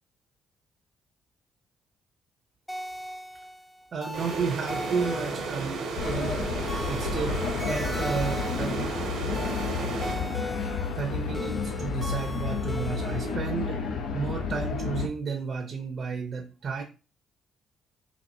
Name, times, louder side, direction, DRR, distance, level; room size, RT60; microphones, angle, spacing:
sound 1, 2.7-13.4, equal, 5° left, 0.3 m, -39 dB
voice 1, 3.9-6.4 6.9-8.9 10.9-16.8, right 5 dB, 50° right, 4 dB, 0.6 m, -32 dB
sound 2, 4.1-10.8, right 4 dB, 90° right, 0.9 m, -34 dB
sound 3, 6.0-15.1, left 5 dB, 80° left, 0.6 m, -31 dB
4.2 x 2.7 x 2.6 m, 0.32 s
cardioid pair, 90°, 0 cm